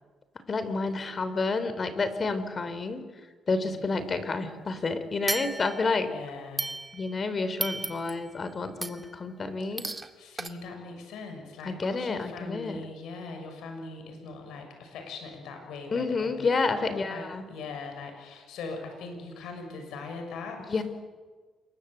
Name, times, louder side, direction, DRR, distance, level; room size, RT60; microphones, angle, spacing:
voice 1, 0.5-3.0 3.5-6.1 6.9-9.8 11.6-12.8 15.9-17.4 20.7-20.8, left 3 dB, 40° left, 11 dB, 3.5 m, -29 dB
sound 1, 5.3-6.0 6.6-7.2 7.6-8.3 8.8-9.2 9.8-10.1 10.4-10.5, right 3 dB, 20° right, 2.0 m, -34 dB
voice 2, 6.0-6.7 9.9-20.8, left 4 dB, 85° left, 4 dB, 6.6 m, -41 dB
27.5 x 23.0 x 8.2 m, 1.4 s
cardioid pair, 90°, 0 cm